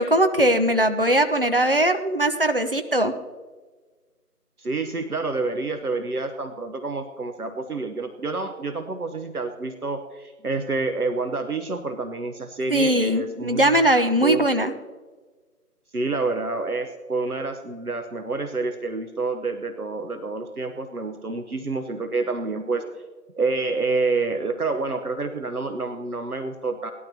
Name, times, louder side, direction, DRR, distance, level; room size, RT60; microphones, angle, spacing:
voice 1, 0.0-3.1 12.7-14.7, right 1 dB, 35° right, 7 dB, 0.7 m, -20 dB
voice 2, 4.6-13.7 14.2-14.8 15.9-22.8 23.3-26.9, right 3 dB, 65° right, 7 dB, 1.1 m, -28 dB
19.0 x 12.0 x 2.8 m, 1.3 s
figure-of-eight pair, 160°, 47 cm